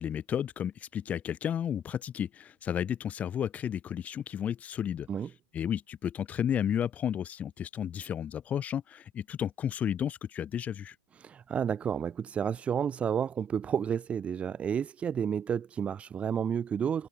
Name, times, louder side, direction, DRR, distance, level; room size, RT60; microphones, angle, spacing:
voice 1, 0.0-5.1 5.5-10.9, left 9 dB, 10° left, 5.5 m, -32 dB
voice 2, 11.2-17.1, right 8 dB, 10° right, 3.7 m, -31 dB
hypercardioid pair, 165°, 12 cm